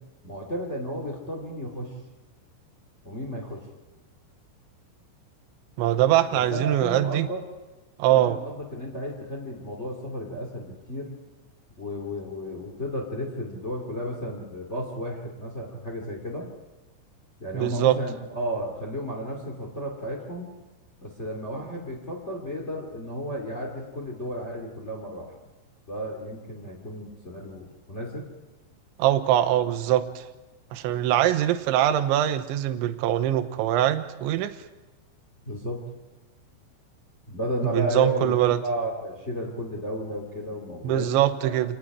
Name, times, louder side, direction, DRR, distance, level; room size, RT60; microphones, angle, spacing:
voice 1, 0.2-2.0 3.0-3.7 6.3-7.4 8.1-11.2 11.8-16.5 17.4-20.5 21.0-25.3 25.9-28.3 35.4-35.8 37.3-41.2 41.4-41.5, equal, 75° left, 0 dB, 0.6 m, -33 dB
voice 2, 5.8-7.3 8.0-8.4 17.5-18.0 29.0-30.2 30.7-34.6 37.7-38.6 40.8-41.7, right 12 dB, 80° right, 10 dB, 2.9 m, -22 dB
28.0 x 19.0 x 4.9 m, 1.1 s
omnidirectional pair, 6.0 m